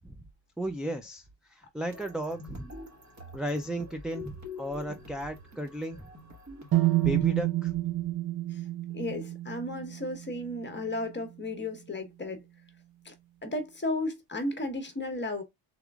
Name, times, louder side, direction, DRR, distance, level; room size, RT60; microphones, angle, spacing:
voice 1, 0.6-2.7 3.3-6.1 6.9-7.7, right 1 dB, ahead, 0.4 m, -34 dB
sound 1, 1.9-7.2, left 3 dB, 40° right, 1.5 m, -46 dB
sound 2, 6.7-10.7, right 16 dB, 55° right, 0.6 m, -29 dB
voice 2, 8.9-12.4 13.0-13.1 13.4-15.4, left 2 dB, 25° left, 1.1 m, -34 dB
3.5 x 3.5 x 2.3 m
wide cardioid pair, 115°, 45 cm